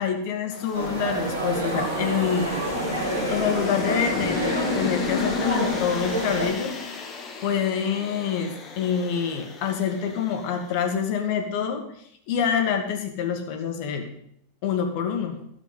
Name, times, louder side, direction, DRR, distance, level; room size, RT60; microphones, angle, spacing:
voice 1, 0.0-2.5 3.3-6.8 7.4-11.8 12.3-14.1 14.6-15.4, left 7 dB, 45° left, 5 dB, 2.3 m, -26 dB
sound 1, 0.5-10.9, left 5 dB, 25° left, 2.2 m, -33 dB
sound 2, 0.7-6.5, right 2 dB, 70° right, 3.9 m, -28 dB
13.5 x 7.7 x 7.6 m, 0.71 s
figure-of-eight pair, 90°, 0 cm